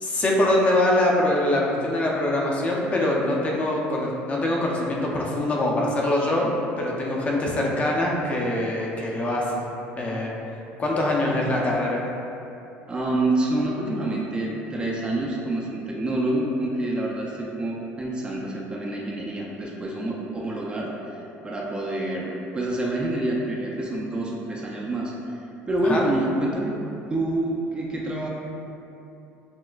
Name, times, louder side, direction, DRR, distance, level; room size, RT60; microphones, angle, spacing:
voice 1, 0.0-9.7 10.0-10.4 10.8-12.0 25.8-26.0, left 1 dB, 30° left, -2 dB, 0.5 m, -23 dB
voice 2, 12.9-20.9 21.4-25.1 25.7-26.7 27.1-28.3, right 1 dB, 20° right, -3 dB, 0.4 m, -27 dB
6.0 x 2.1 x 2.4 m, 2.8 s
cardioid pair, 120°, 5 cm